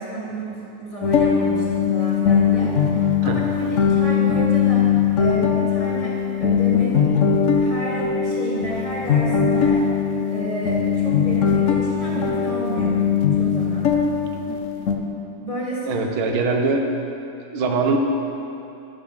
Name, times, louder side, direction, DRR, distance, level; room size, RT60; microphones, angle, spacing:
voice 1, 0.0-4.9 5.2-6.1 6.4-7.1 7.5-9.8 10.3-13.0 13.3-13.9 15.4-16.4, right 1 dB, 15° left, -7 dB, 2.3 m, -31 dB
sound 1, 1.0-15.0, left 7 dB, 65° left, 0.7 m, -20 dB
voice 2, 15.9-16.9 17.5-18.0, right 3 dB, 90° right, 3 dB, 1.8 m, -22 dB
11.5 x 6.3 x 6.6 m, 2.8 s
omnidirectional pair, 2.2 m